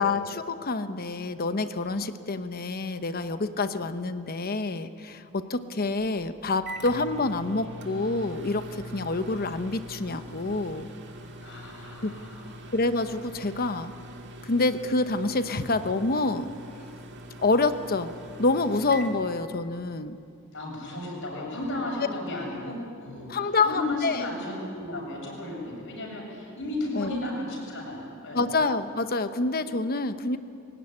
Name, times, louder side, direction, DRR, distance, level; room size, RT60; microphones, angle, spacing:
voice 1, 0.0-10.9 12.0-12.1 12.7-13.9 14.4-16.5 17.4-18.1 18.4-20.2 23.3-24.3 26.9-27.1 28.3-30.4, left 3 dB, 45° left, 10 dB, 1.0 m, -27 dB
Microwave oven, 6.0-20.0, right 1 dB, 60° right, 2.0 m, -43 dB
voice 2, 11.4-12.5 20.5-28.5, left 1 dB, 65° left, -2 dB, 7.6 m, -34 dB
21.5 x 18.5 x 9.8 m, 2.5 s
head